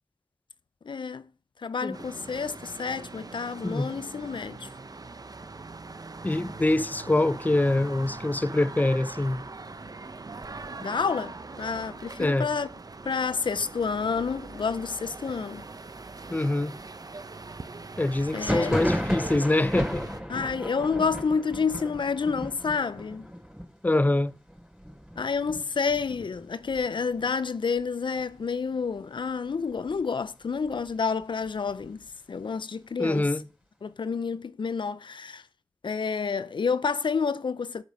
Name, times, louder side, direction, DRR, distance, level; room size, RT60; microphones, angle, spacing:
voice 1, 0.9-1.3 1.6-4.7 10.8-12.7 13.0-15.6 18.3-18.8 20.3-23.3 25.2-32.0 32.3-33.3 33.8-35.4 35.8-37.8, left 5 dB, 70° left, 0.5 m, -29 dB
sound 1, 1.9-20.2, right 3 dB, 50° right, 0.8 m, -42 dB
voice 2, 6.2-9.4 12.2-12.5 16.3-16.7 18.0-20.1 23.8-24.3 33.0-33.4, left 2 dB, 20° left, 0.6 m, -24 dB
Thunder, 18.3-27.8 28.1-28.8 29.0-30.0 30.4-32.1, equal, 10° right, 4.1 m, -35 dB
7.3 x 7.3 x 6.3 m
cardioid pair, 45°, 8 cm